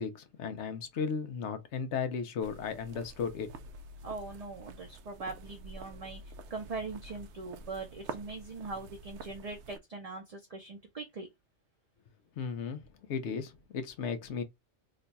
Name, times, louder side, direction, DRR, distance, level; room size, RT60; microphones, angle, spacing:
voice 1, 0.0-3.5 12.4-14.4, left 6 dB, 80° left, 1.0 m, -35 dB
sound 1, 2.4-9.8, right 3 dB, 80° right, 0.9 m, -48 dB
voice 2, 4.0-11.3, right 3 dB, 40° right, 0.6 m, -41 dB
3.1 x 2.2 x 3.9 m
omnidirectional pair, 1.2 m